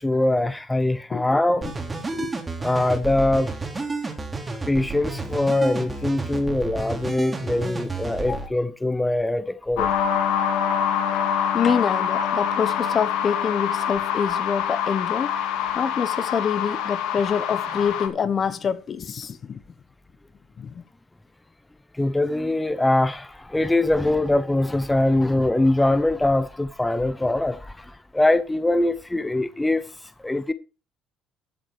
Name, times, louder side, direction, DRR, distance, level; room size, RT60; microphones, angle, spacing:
voice 1, 0.0-1.7 2.6-3.5 4.7-9.9 21.9-29.9 30.2-30.5, left 2 dB, 10° left, 0.9 m, -22 dB
sound 1, 1.6-8.5, right 3 dB, 25° right, 3.5 m, -31 dB
sound 2, 9.8-18.1, left 8 dB, 80° left, 2.0 m, -25 dB
voice 2, 11.5-15.3 15.7-19.6 20.6-20.8, left 7 dB, 45° left, 1.3 m, -26 dB
13.0 x 7.5 x 4.9 m
supercardioid pair, 75°, 0 cm